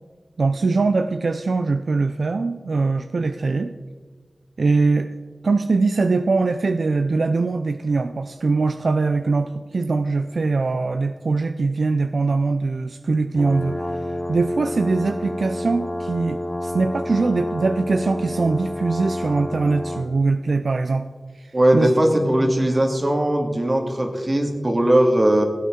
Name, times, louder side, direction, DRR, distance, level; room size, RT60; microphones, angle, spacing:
voice 1, 0.4-3.8 4.6-5.1 5.4-21.1 21.4-21.9, right 3 dB, 85° right, 9 dB, 0.4 m, -22 dB
sound 1, 13.4-20.1, left 1 dB, 20° left, 1.4 m, -29 dB
voice 2, 21.5-25.4, right 1 dB, 45° right, 2 dB, 2.0 m, -19 dB
16.5 x 8.3 x 3.7 m, 1.5 s
cardioid pair, 40°, 0 cm